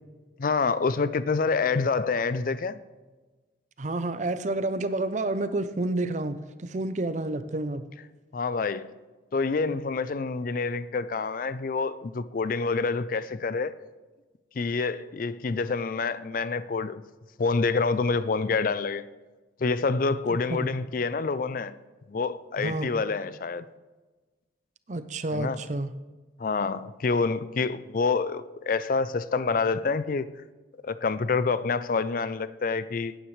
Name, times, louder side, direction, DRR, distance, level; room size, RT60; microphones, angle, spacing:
voice 1, 0.4-2.8 8.3-8.9 9.3-13.8 14.6-17.0 17.4-19.1 19.6-21.8 22.1-23.6 25.3-25.6 26.4-30.3 30.8-33.2, left 4 dB, 50° left, 0.4 m, -27 dB
voice 2, 3.8-7.8 20.3-20.7 22.6-22.9 24.9-25.9, right 2 dB, 40° right, 0.6 m, -29 dB
16.5 x 8.9 x 3.3 m
head